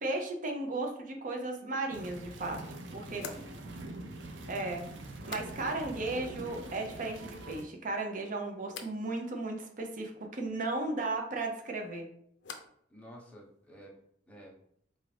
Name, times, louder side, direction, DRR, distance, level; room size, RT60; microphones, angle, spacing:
voice 1, 0.0-2.6 2.9-3.2 4.5-4.9 5.3-12.1, right 2 dB, 45° right, 3 dB, 0.6 m, -35 dB
sound 1, 1.9-7.6, right 2 dB, 90° right, 0.5 m, -44 dB
voice 2, 2.9-3.6 5.2-5.4 12.9-13.9 14.3-14.5, equal, 5° left, -3 dB, 0.8 m, -51 dB
sound 2, 3.1-6.0 6.3-6.9 7.2-7.8 8.7-9.0 11.4-12.9 13.2-13.8, left 5 dB, 75° left, 0.5 m, -50 dB
4.0 x 2.5 x 3.2 m, 0.67 s
head